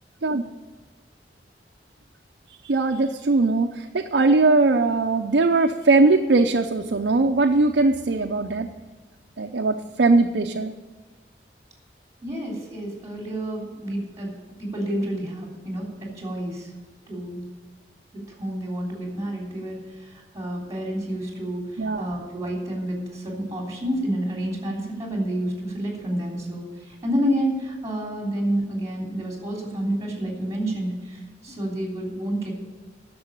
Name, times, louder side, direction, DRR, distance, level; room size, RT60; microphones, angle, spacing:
voice 1, 2.6-8.7 9.4-10.7 21.8-22.1, right 3 dB, 70° right, 3 dB, 0.6 m, -20 dB
voice 2, 12.2-14.3 14.6-16.7 17.1-17.4 18.1-32.5, right 1 dB, 20° right, -1 dB, 3.4 m, -29 dB
10.5 x 6.9 x 8.8 m, 1.3 s
head